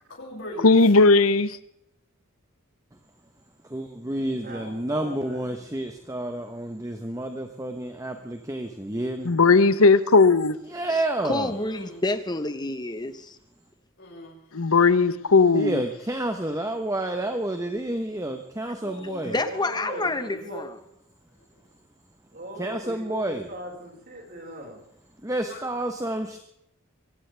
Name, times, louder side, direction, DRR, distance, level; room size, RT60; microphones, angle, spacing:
voice 1, 0.1-0.8 11.5-12.0 14.0-14.4 18.8-19.5 19.8-20.4 25.3-25.7, left 1 dB, 55° left, 6.5 m, -40 dB
voice 2, 0.6-1.6 9.2-10.6 14.5-15.8, left 3 dB, 80° left, 1.0 m, -17 dB
voice 3, 3.7-9.3 10.7-11.5 15.5-19.3 22.6-23.4 25.2-26.4, right 1 dB, 15° right, 1.1 m, -29 dB
voice 4, 4.4-5.6 19.3-20.7 22.3-24.8, right 1 dB, 45° right, 5.3 m, -39 dB
voice 5, 10.9-13.4 19.2-20.8, left 2 dB, 20° left, 1.1 m, -29 dB
23.5 x 17.0 x 3.5 m
head